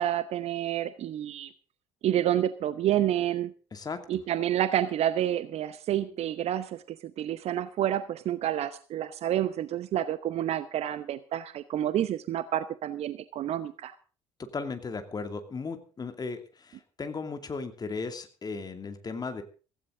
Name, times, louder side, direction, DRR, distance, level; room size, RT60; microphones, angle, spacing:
voice 1, 0.0-1.5 2.0-3.5 4.1-13.9, right 11 dB, 50° right, 15 dB, 0.8 m, -29 dB
voice 2, 3.7-4.2 14.5-19.4, left 4 dB, 30° left, 7 dB, 2.5 m, -36 dB
16.0 x 15.5 x 3.8 m, 0.37 s
figure-of-eight pair, 55°, 14 cm